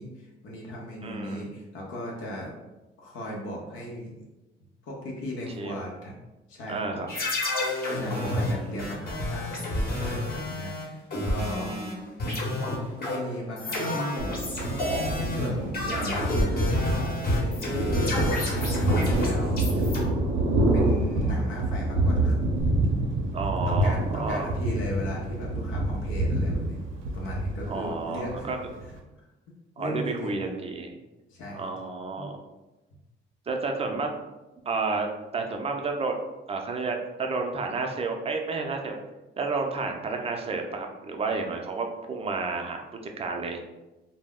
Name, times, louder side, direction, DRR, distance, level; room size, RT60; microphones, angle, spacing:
voice 1, 0.0-2.5 3.0-4.1 4.8-6.1 6.5-7.0 8.0-11.7 13.0-14.5 15.2-18.5 19.2-19.8 20.7-22.4 23.7-26.8 27.1-28.5 29.8-30.3 31.3-31.7 32.2-32.3, left 1 dB, 80° left, -3 dB, 0.7 m, -37 dB
voice 2, 1.0-1.4 5.6-5.7 6.7-7.1 8.1-9.0 11.6-12.2 23.3-24.5 27.7-28.7 29.8-30.9 31.5-32.4 33.5-34.1 34.7-36.2 36.5-39.0 39.4-42.8 43.2-43.6, right 4 dB, 30° right, 3 dB, 0.4 m, -31 dB
sound 1, 7.1-11.9 12.2-20.0, left 1 dB, 50° left, 0.9 m, -29 dB
Thunder, 14.2-29.0, right 1 dB, 90° right, 0.5 m, -27 dB
2.2 x 2.0 x 3.5 m, 1.0 s
cardioid pair, 90°, 20 cm